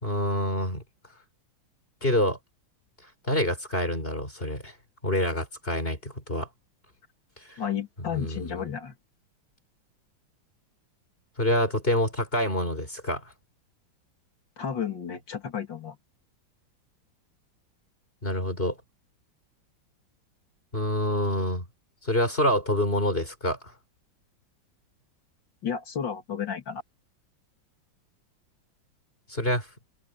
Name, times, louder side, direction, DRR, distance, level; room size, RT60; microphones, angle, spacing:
voice 1, 0.0-0.8 2.0-2.4 3.3-4.7 5.0-6.5 7.5-7.6 8.1-8.5 11.4-13.3 18.2-18.8 20.7-21.6 22.0-23.6 29.3-29.7, left 1 dB, 25° left, 5.8 m, -26 dB
voice 2, 7.6-8.9 14.6-16.0 25.6-26.8, left 8 dB, 65° left, 3.2 m, -32 dB
omnidirectional pair, 2.2 m